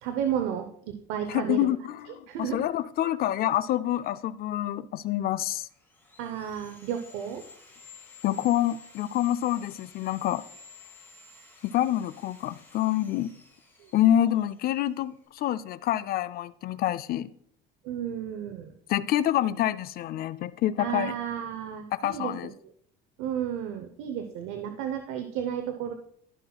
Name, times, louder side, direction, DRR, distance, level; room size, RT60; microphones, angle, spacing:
voice 1, 0.0-1.6 2.3-2.7 6.2-7.4 13.8-13.9 17.8-18.7 20.8-22.7 23.2-25.9, right 9 dB, 80° right, 6 dB, 0.8 m, -32 dB
voice 2, 1.3-5.7 8.2-10.4 11.6-13.3 13.9-17.3 18.9-21.1 21.9-22.5, left 12 dB, 50° left, 14 dB, 0.4 m, -27 dB
Sawing, 5.4-15.2, left 5 dB, 10° left, 3.7 m, -52 dB
14.0 x 5.9 x 2.3 m, 0.67 s
cardioid pair, 120°, 21 cm